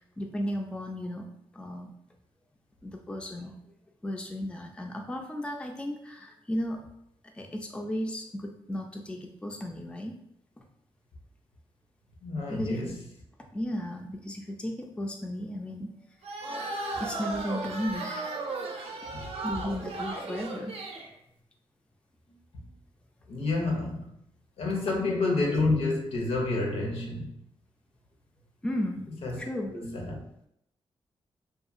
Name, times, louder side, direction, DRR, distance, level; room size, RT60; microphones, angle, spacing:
voice 1, 0.2-1.2 1.5-1.9 2.8-3.5 4.0-6.8 7.3-10.2 12.5-12.8 13.5-15.9 17.0-18.5 19.4-20.7 25.1-25.2 25.4-25.5 28.6-29.1 29.4-29.8, left 1 dB, 10° left, 2 dB, 0.3 m, -34 dB
voice 2, 12.2-12.9 19.1-19.3 23.3-24.1 24.6-27.4 29.1-29.4 29.7-30.2, left 3 dB, 85° left, 0 dB, 0.7 m, -29 dB
sound 1, 16.2-21.1, right 3 dB, 75° right, 0.5 m, -35 dB
2.8 x 2.3 x 2.5 m, 0.74 s
wide cardioid pair, 110°, 10 cm